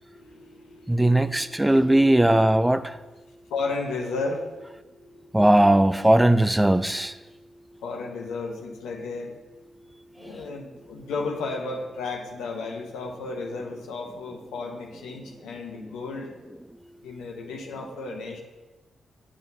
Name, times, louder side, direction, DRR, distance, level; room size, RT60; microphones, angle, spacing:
voice 1, 0.1-1.7 2.0-2.4 3.5-5.7 7.8-9.3 10.2-16.3 17.0-18.4, left 3 dB, 85° left, 1 dB, 0.9 m, -34 dB
voice 2, 0.9-3.0 5.3-7.1, right 1 dB, 10° right, 12 dB, 0.4 m, -19 dB
8.5 x 7.4 x 2.7 m, 1.2 s
supercardioid pair, 50°, 0 cm